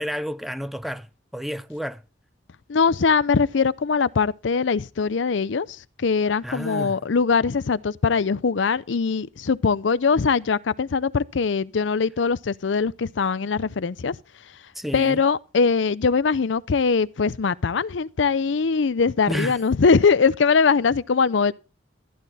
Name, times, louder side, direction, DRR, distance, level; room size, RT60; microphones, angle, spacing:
voice 1, 0.0-2.0 6.4-7.0 14.7-15.2 19.3-19.6, equal, ahead, 0.6 m, -31 dB
voice 2, 2.7-14.2 14.9-21.5, left 5 dB, 75° left, 0.5 m, -21 dB
13.5 x 11.0 x 4.2 m
head